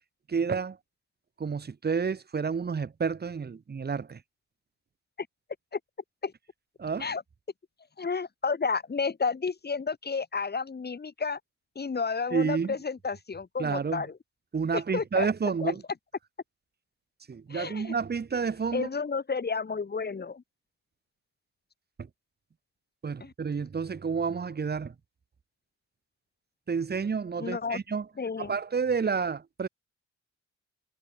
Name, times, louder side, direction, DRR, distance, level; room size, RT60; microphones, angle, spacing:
voice 1, 0.3-0.8 1.4-4.2 6.8-7.1 12.3-12.8 13.6-14.0 14.5-15.8 17.3-18.9 22.0-22.1 23.0-24.9 26.7-28.1 28.4-29.7, right 5 dB, 35° right, 1.9 m, -30 dB
voice 2, 8.0-11.4 11.8-14.1 14.7-15.3 15.6-15.7 17.5-17.9 18.7-20.4 23.2-23.3 27.4-27.8 28.2-28.6, left 5 dB, 35° left, 5.5 m, -31 dB
cardioid pair, 90°, 30 cm